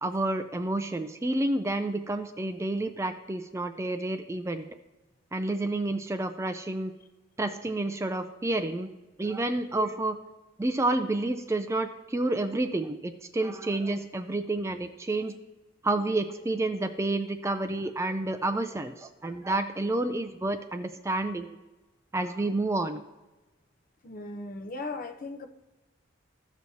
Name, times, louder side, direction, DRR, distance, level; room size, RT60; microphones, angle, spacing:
voice 1, 0.0-4.7 5.3-6.9 7.4-8.9 9.2-10.2 10.6-15.4 15.8-21.6 22.1-23.0, right 2 dB, 15° right, 8 dB, 0.3 m, -29 dB
voice 2, 24.0-25.5, left 3 dB, 45° left, 7 dB, 0.7 m, -37 dB
15.0 x 6.1 x 2.8 m, 1.1 s
head